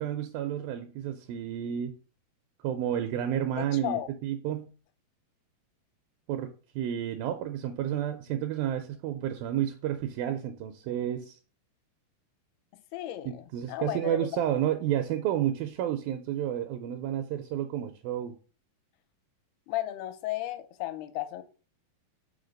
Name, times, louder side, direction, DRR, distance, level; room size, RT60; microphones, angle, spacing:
voice 1, 0.0-1.9 2.6-4.7 6.3-11.4 13.3-18.4, right 11 dB, 80° right, 2.2 m, -31 dB
voice 2, 3.6-4.1 12.9-14.3 19.7-21.4, left 14 dB, 90° left, 2.6 m, -34 dB
5.7 x 4.0 x 5.1 m
omnidirectional pair, 4.5 m